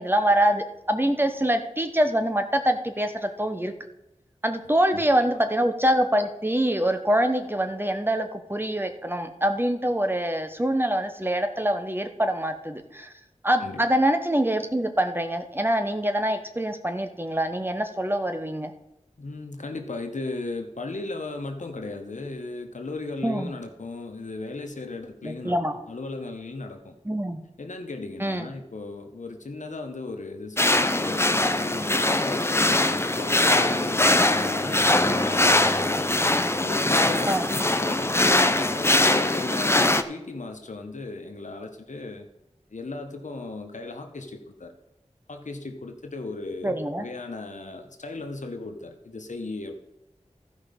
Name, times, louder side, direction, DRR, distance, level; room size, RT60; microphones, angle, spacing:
voice 1, 0.0-3.7 4.4-13.1 13.4-18.7 23.2-23.5 25.2-25.7 27.0-27.4 28.2-28.5 37.3-37.5 46.6-47.1, right 1 dB, 15° right, 7 dB, 1.1 m, -25 dB
voice 2, 4.9-5.3 13.6-13.8 19.2-25.6 25.9-26.9 27.6-36.0 36.5-38.1 38.6-42.2 42.7-44.7 45.3-49.8, left 3 dB, 85° left, 5 dB, 1.2 m, -36 dB
sound 1, 30.6-40.0, left 2 dB, 20° left, 0.6 m, -22 dB
13.5 x 5.3 x 5.3 m, 0.87 s
wide cardioid pair, 60°, 12 cm